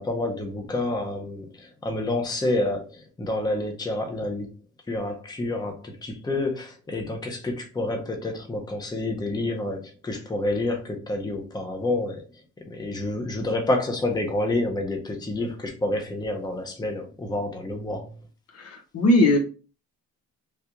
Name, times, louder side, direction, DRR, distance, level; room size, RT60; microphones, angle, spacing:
voice 1, 0.0-4.5 4.9-12.2 12.7-18.1, left 2 dB, 15° left, 0.7 m, -28 dB
voice 2, 18.5-19.4, left 1 dB, 55° left, 0.9 m, -19 dB
3.4 x 2.3 x 2.9 m
cardioid pair, 90°, 30 cm